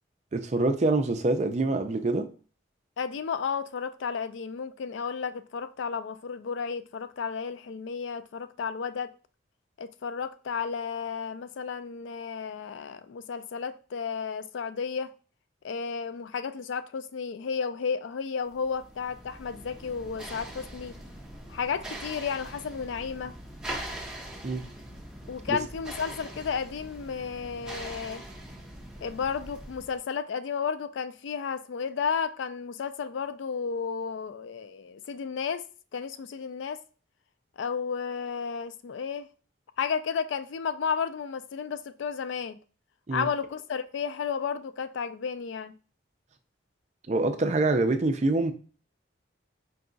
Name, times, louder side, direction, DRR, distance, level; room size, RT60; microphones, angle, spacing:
voice 1, 0.3-2.3 24.4-24.6 25.5-25.6 43.1-43.3 47.1-48.5, right 2 dB, 35° right, 0.4 m, -25 dB
voice 2, 3.0-9.1 9.8-15.1 15.6-20.9 21.5-23.3 25.3-28.2 29.0-35.6 35.9-36.8 37.6-39.3 39.8-42.6 43.1-45.7, left 6 dB, 65° left, 0.3 m, -33 dB
sound 1, 18.5-30.0, right 1 dB, 5° right, 0.8 m, -42 dB
4.6 x 2.3 x 3.8 m
head